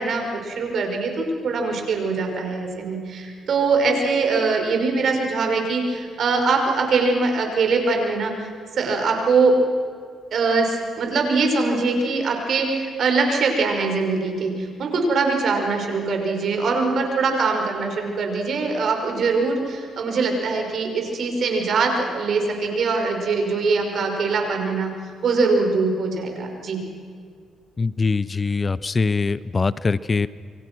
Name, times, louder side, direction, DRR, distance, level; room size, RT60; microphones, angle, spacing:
voice 1, 0.0-9.5 10.3-24.9 25.2-26.8, right 4 dB, 60° right, 3 dB, 5.6 m, -22 dB
voice 2, 27.8-30.3, left 4 dB, 30° left, 17 dB, 0.6 m, -22 dB
28.0 x 25.0 x 6.2 m, 2.1 s
cardioid pair, 90°, 0 cm